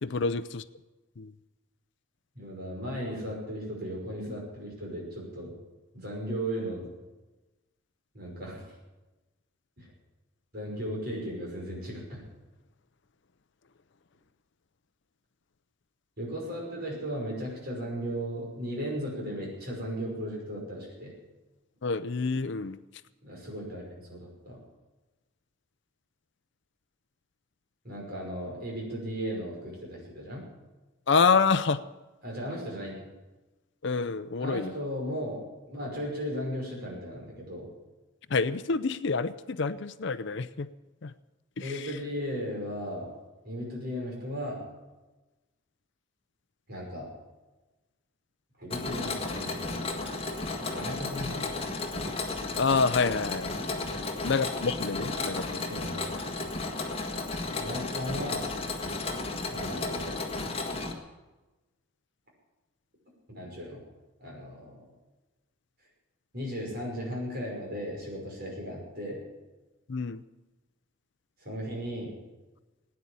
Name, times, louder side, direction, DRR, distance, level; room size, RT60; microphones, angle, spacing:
voice 1, 0.0-0.6 1.2-1.3 21.8-22.8 31.1-31.8 33.8-34.7 38.3-40.7 41.0-41.1 41.6-41.7 52.6-53.5 54.2-55.6 69.9-70.2, left 4 dB, 55° left, 14 dB, 0.5 m, -27 dB
voice 2, 2.3-5.5 5.9-6.9 8.1-8.8 9.8-9.9 10.5-12.2 16.2-21.1 23.2-24.6 27.8-30.4 32.2-33.0 34.4-37.7 41.6-43.1 43.4-44.6 46.7-47.1 48.6-51.5 53.9-54.3 55.7-56.5 57.6-58.5 59.5-60.3 63.3-63.8 64.2-64.9 66.3-69.2 71.4-72.1, equal, 50° right, -2 dB, 5.7 m, -36 dB
Mechanisms, 48.7-60.9, left 3 dB, 25° left, 1.6 m, -33 dB
16.5 x 9.6 x 8.7 m, 1.1 s
head